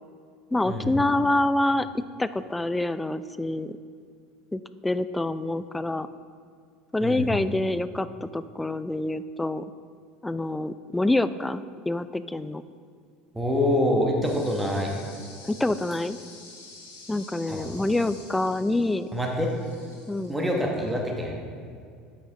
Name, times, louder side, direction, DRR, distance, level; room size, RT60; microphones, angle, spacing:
voice 1, 0.5-1.9 2.2-3.8 4.5-6.1 6.9-9.6 10.2-12.6 15.4-16.2 17.1-19.1 20.1-20.4, left 2 dB, 10° left, 14 dB, 0.3 m, -26 dB
voice 2, 13.3-14.9 17.5-17.7 19.1-19.5 20.3-21.4, left 1 dB, 10° right, 0 dB, 1.6 m, -26 dB
sound 1, 14.2-20.9, left 3 dB, 75° left, 1.6 m, -48 dB
9.1 x 7.3 x 3.8 m, 2.3 s
figure-of-eight pair, 70°, 0 cm